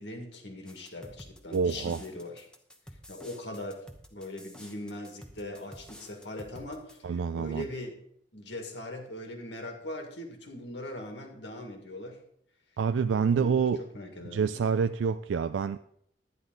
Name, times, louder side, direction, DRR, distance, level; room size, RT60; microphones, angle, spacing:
voice 1, 0.0-2.5 3.1-3.8 4.1-7.9 8.3-12.2 13.1-14.5, left 1 dB, 75° left, 2.0 m, -41 dB
sound 1, 0.7-7.0, equal, 5° left, 0.9 m, -50 dB
voice 2, 1.5-2.0 7.0-7.7 12.8-13.8 14.2-15.8, right 6 dB, 85° right, 0.3 m, -27 dB
11.5 x 10.0 x 3.9 m
head